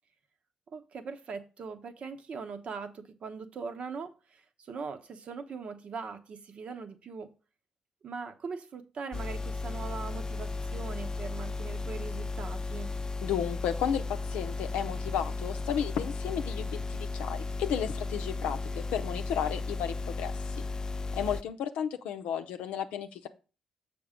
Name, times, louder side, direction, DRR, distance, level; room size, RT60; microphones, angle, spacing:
voice 1, 0.7-7.3 8.0-12.9, right 5 dB, 55° right, 8 dB, 0.9 m, -41 dB
sound 1, 9.1-21.4, left 3 dB, 30° left, 0.5 m, -35 dB
voice 2, 13.2-18.6 18.9-20.3 21.1-23.3, left 9 dB, 70° left, 8 dB, 0.6 m, -33 dB
7.0 x 5.2 x 5.0 m, 0.34 s
hypercardioid pair, 40°, 2 cm